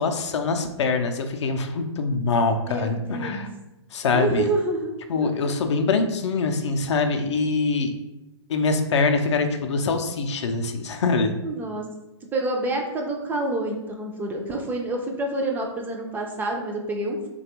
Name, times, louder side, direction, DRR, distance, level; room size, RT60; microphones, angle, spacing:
voice 1, 0.0-3.5 3.9-4.5 5.1-7.9 8.5-11.3, left 4 dB, 70° left, 6 dB, 0.4 m, -24 dB
voice 2, 2.6-3.5 4.1-4.9 5.2-5.5 11.4-11.8 12.3-17.2, right 2 dB, 15° right, 1 dB, 0.3 m, -28 dB
3.3 x 2.2 x 2.9 m, 0.98 s
hypercardioid pair, 120°, 15 cm